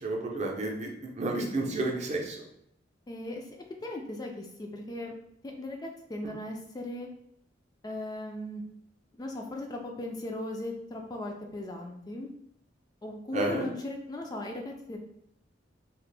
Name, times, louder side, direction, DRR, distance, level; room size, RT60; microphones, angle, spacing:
voice 1, 0.0-2.4 6.2-6.3 13.3-13.7, right 2 dB, 40° right, 0 dB, 0.6 m, -31 dB
voice 2, 3.1-3.5 3.8-5.1 5.6-7.1 7.8-8.6 9.2-12.3 13.0-15.0, left 1 dB, 20° left, 1 dB, 0.3 m, -37 dB
2.9 x 2.4 x 3.3 m, 0.74 s
head